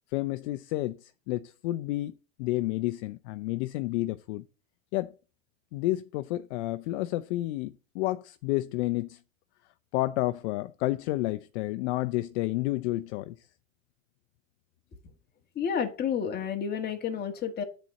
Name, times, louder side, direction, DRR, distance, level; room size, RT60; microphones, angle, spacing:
voice 1, 0.1-4.4 4.9-5.1 5.7-9.2 9.9-13.5, left 17 dB, 55° left, 0.6 m, -30 dB
voice 2, 15.5-17.6, left 7 dB, 25° left, 1.7 m, -30 dB
10.5 x 4.2 x 7.6 m
supercardioid pair, 145°, 41 cm